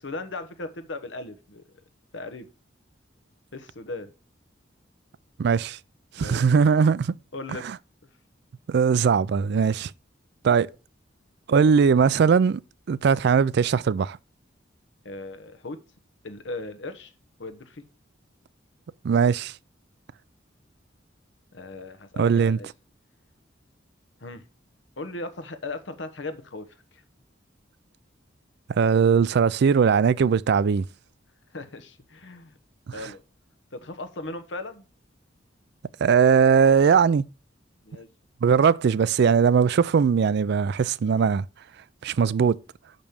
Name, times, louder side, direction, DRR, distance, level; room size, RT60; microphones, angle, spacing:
voice 1, 0.0-1.6 2.1-2.5 3.5-4.1 6.2-6.4 7.3-7.7 15.0-15.8 16.2-17.1 17.4-17.8 21.5-22.7 24.2-24.4 25.0-27.0 31.5-32.6 32.9-33.2 33.7-34.8 37.8-38.1, left 2 dB, 70° left, 1.0 m, -37 dB
voice 2, 5.4-5.8 6.2-7.2 8.7-9.9 10.4-10.7 11.5-12.6 12.9-14.2 19.0-19.5 22.2-22.6 28.8-30.9 36.0-37.3 38.4-41.5 42.0-42.6, right 6 dB, 60° right, 0.4 m, -20 dB
6.1 x 5.3 x 6.9 m
head